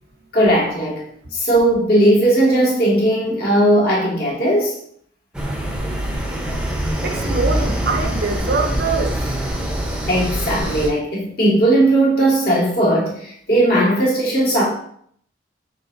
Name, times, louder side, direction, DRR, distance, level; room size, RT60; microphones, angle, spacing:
voice 1, 0.3-1.1 1.3-4.8 10.1-14.7, right 1 dB, 55° left, -5 dB, 1.8 m, -17 dB
sound 1, 5.3-10.9, right 1 dB, 5° right, 0.7 m, -24 dB
voice 2, 7.0-9.2, right 4 dB, 55° right, 4 dB, 0.7 m, -23 dB
5.7 x 3.5 x 2.7 m, 0.65 s
head